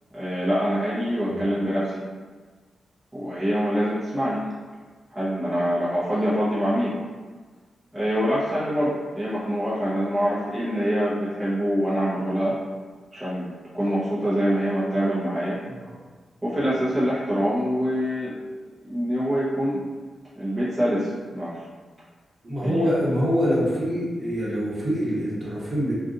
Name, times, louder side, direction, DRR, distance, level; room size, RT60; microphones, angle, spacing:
voice 1, 0.1-2.0 3.1-4.4 5.1-6.9 7.9-12.5 13.1-15.6 16.4-18.3 18.8-19.8 20.4-21.6 22.6-22.8, equal, 15° right, -11 dB, 0.8 m, -25 dB
voice 2, 22.4-25.9, equal, 35° right, -7 dB, 1.1 m, -25 dB
2.5 x 2.4 x 3.9 m, 1.4 s
cardioid pair, 95°, 0 cm